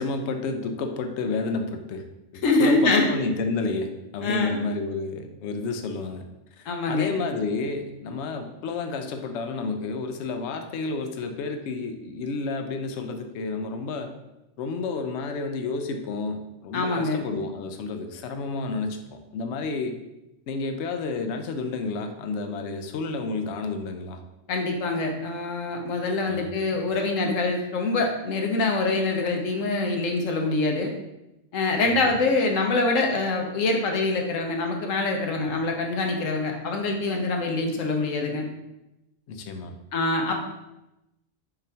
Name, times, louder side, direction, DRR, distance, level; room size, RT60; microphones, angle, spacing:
voice 1, 0.0-2.0 2.3-6.2 6.6-14.1 14.6-19.0 19.3-20.0 20.5-24.2 26.3-26.9 31.9-32.2 39.3-39.7, left 3 dB, 70° left, 6 dB, 0.8 m, -30 dB
voice 2, 2.4-3.1 4.2-4.6 6.7-7.1 16.7-17.3 24.5-30.9 31.5-38.4 39.9-40.4, left 3 dB, 85° left, 2 dB, 1.1 m, -24 dB
4.8 x 3.9 x 2.7 m, 0.93 s
omnidirectional pair, 1.3 m